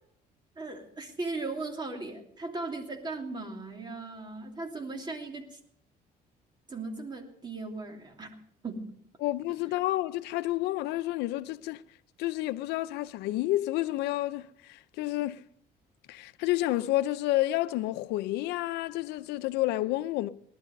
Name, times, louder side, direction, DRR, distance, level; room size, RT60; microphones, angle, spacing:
voice 1, 0.6-5.6 6.7-8.3 8.6-8.9, right 3 dB, 25° right, 2.8 m, -37 dB
voice 2, 9.2-11.8 12.2-15.4 16.1-20.3, left 16 dB, 90° left, 0.7 m, -30 dB
19.0 x 12.0 x 5.3 m
cardioid pair, 110°, 17 cm